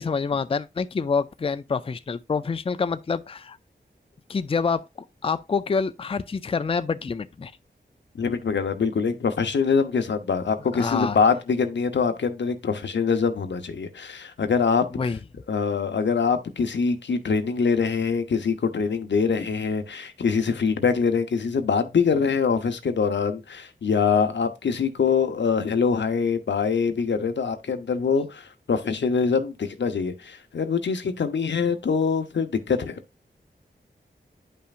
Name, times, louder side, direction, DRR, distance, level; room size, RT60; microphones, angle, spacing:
voice 1, 0.0-3.6 4.3-4.8 5.2-7.5 10.7-11.2 14.9-15.2, left 5 dB, 30° left, 0.4 m, -26 dB
voice 2, 8.1-15.1 15.5-33.0, left 5 dB, 90° left, 0.8 m, -24 dB
10.0 x 5.6 x 2.5 m
wide cardioid pair, 70°, 18 cm